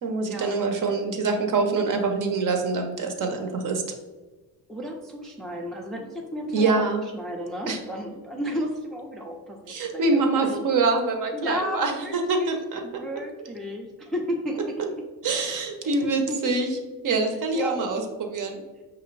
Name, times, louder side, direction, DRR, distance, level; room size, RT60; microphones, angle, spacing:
voice 1, 0.0-3.8 6.5-7.0 7.7-7.8 9.7-12.8 15.2-16.7 17.0-18.6, right 3 dB, 50° right, 4 dB, 0.8 m, -25 dB
voice 2, 4.7-6.8 7.1-10.6 11.3-12.6 12.8-14.8 15.8-16.6 17.5-17.8, equal, ahead, 0 dB, 0.4 m, -33 dB
5.3 x 2.5 x 3.1 m, 1.2 s
cardioid pair, 95°, 42 cm